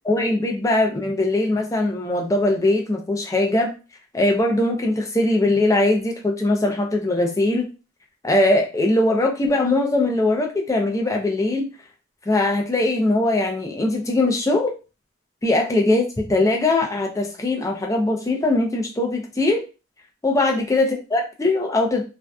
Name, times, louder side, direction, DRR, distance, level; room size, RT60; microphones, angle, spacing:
voice 1, 0.1-3.7 4.1-7.7 8.2-11.7 12.3-14.7 15.4-19.6 20.2-22.0, left 2 dB, 15° left, 1 dB, 0.4 m, -21 dB
2.5 x 2.2 x 2.2 m, 0.31 s
head